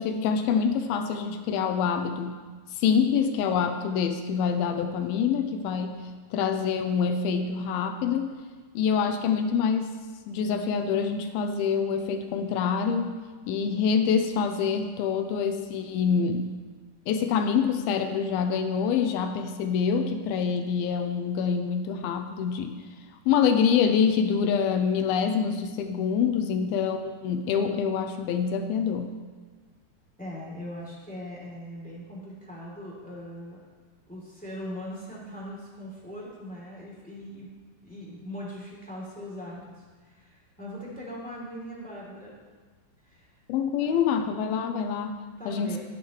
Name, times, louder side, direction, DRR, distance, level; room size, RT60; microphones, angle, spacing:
voice 1, 0.0-2.4 2.8-6.0 6.3-8.3 8.8-9.9 10.3-13.2 13.5-16.5 17.1-22.8 23.3-29.1 43.5-45.2 45.5-45.8, left 6 dB, 80° left, 6 dB, 2.5 m, -26 dB
voice 2, 30.2-33.6 34.1-37.5 37.8-42.3 43.0-43.4 43.8-44.0 45.4-45.8, equal, 5° left, -5 dB, 2.1 m, -40 dB
15.0 x 10.5 x 3.1 m, 1.4 s
omnidirectional pair, 4.6 m